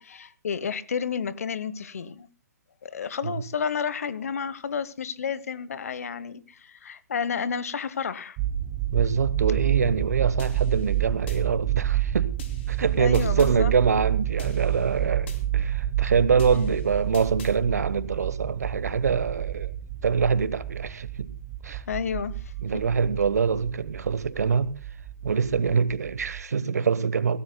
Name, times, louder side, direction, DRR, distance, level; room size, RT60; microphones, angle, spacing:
voice 1, 0.0-2.3 2.8-8.4 13.0-13.7 16.5-16.8 21.9-22.8, left 6 dB, 60° left, 1.1 m, -31 dB
sound 1, 8.4-26.4, right 12 dB, 25° right, 0.7 m, -29 dB
voice 2, 8.9-12.3 12.7-19.7 20.0-21.3 21.6-21.8 22.6-24.7 25.2-27.4, right 6 dB, 65° right, 1.2 m, -24 dB
sound 2, 10.4-11.4 12.4-13.5 14.4-15.4 16.4-17.5, left 6 dB, 40° left, 2.9 m, -46 dB
23.0 x 17.0 x 2.2 m
figure-of-eight pair, 135°, 9 cm